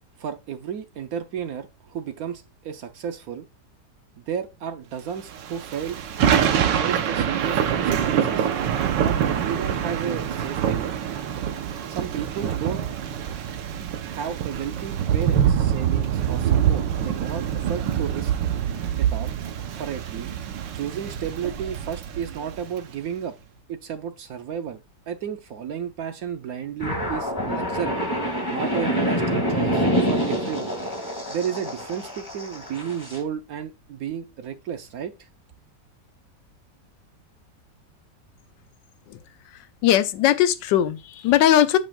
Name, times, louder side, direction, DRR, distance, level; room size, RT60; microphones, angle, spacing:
voice 1, 0.2-3.5 4.2-6.4 6.8-10.9 11.9-12.8 14.1-18.3 19.0-19.3 19.7-20.3 20.7-23.3 23.7-24.8 25.1-28.0 28.5-30.7 31.3-35.3, right 8 dB, 65° right, 1.0 m, -33 dB
Thunder / Rain, 5.3-22.8, right 9 dB, 80° right, 1.5 m, -25 dB
sound 1, 26.8-33.2, equal, 15° left, 1.7 m, -26 dB
voice 2, 39.8-41.8, left 11 dB, 85° left, 1.3 m, -19 dB
8.5 x 6.1 x 2.3 m
omnidirectional pair, 1.9 m